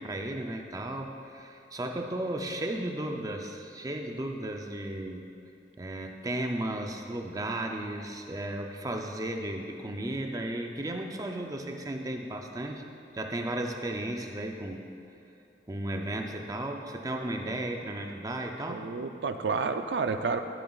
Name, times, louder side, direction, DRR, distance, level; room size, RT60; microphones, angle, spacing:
voice 1, 0.0-5.3 5.8-12.8 13.1-14.9 15.7-18.9, right 1 dB, 20° right, 3 dB, 0.5 m, -34 dB
voice 2, 18.7-20.4, right 4 dB, 70° right, 8 dB, 0.5 m, -30 dB
13.5 x 7.7 x 2.4 m, 2.6 s
head